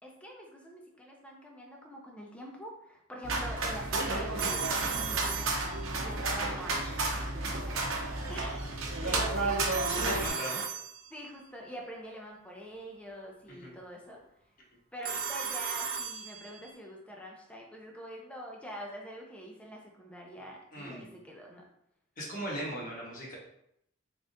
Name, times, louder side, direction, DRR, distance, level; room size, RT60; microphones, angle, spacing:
voice 1, 0.0-5.6 6.0-8.0 8.3-8.7 9.0-9.7 10.0-10.4 11.1-14.2 14.9-21.7, equal, 5° left, -1 dB, 0.6 m, -45 dB
sound 1, 3.2-10.3, right 2 dB, 80° right, 0.8 m, -32 dB
Telephone, 4.4-6.2 9.7-11.4 15.0-16.7, right 6 dB, 45° right, 0.6 m, -36 dB
voice 2, 9.0-9.3 9.9-10.6 13.5-13.7 20.7-21.1 22.2-23.4, equal, 45° left, -4 dB, 1.3 m, -39 dB
3.8 x 3.5 x 2.6 m, 0.76 s
head